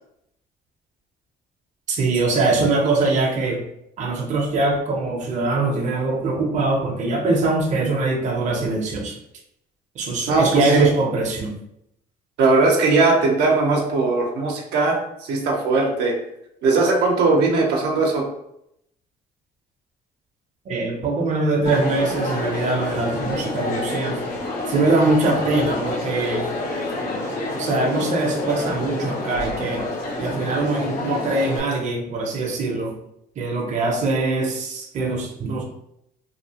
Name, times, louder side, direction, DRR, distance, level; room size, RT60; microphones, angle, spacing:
voice 1, 1.9-3.6 4.0-9.2 10.0-11.6 20.7-24.2 24.7-26.5 27.5-29.8 30.2-32.9 33.4-35.6, right 2 dB, 45° right, 1 dB, 0.6 m, -22 dB
voice 2, 10.3-10.9 12.4-16.2 16.6-18.3, right 3 dB, 85° right, 0 dB, 0.7 m, -19 dB
Crowd, 21.7-31.6, left 2 dB, 85° left, 0.8 m, -28 dB
2.8 x 2.4 x 2.8 m, 0.77 s
cardioid pair, 110°, 17 cm